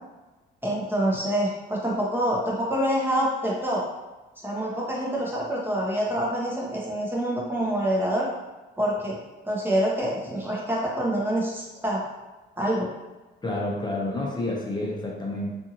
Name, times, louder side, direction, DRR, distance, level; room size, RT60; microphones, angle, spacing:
voice 1, 0.6-3.8 4.4-8.3 8.8-9.2 9.5-12.0 12.6-12.9, right 1 dB, 10° right, -4 dB, 0.8 m, -26 dB
voice 2, 13.4-15.5, left 1 dB, 20° left, -3 dB, 0.8 m, -29 dB
2.6 x 2.5 x 2.8 m, 1.2 s
cardioid pair, 90°, 20 cm